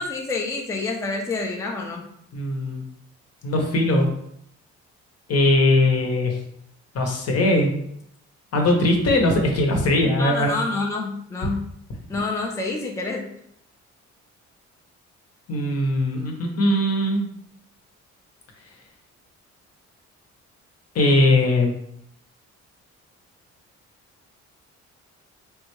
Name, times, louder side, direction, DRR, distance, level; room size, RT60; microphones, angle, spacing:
voice 1, 0.0-2.1 10.0-11.6 12.1-13.3, left 3 dB, 10° left, 1 dB, 0.4 m, -28 dB
voice 2, 2.3-2.8 3.4-4.1 5.3-6.3 6.9-7.7 8.5-10.5 15.5-17.3 20.9-21.7, left 1 dB, 55° left, 2 dB, 0.8 m, -20 dB
3.5 x 2.2 x 3.0 m, 0.73 s
cardioid pair, 90°, 30 cm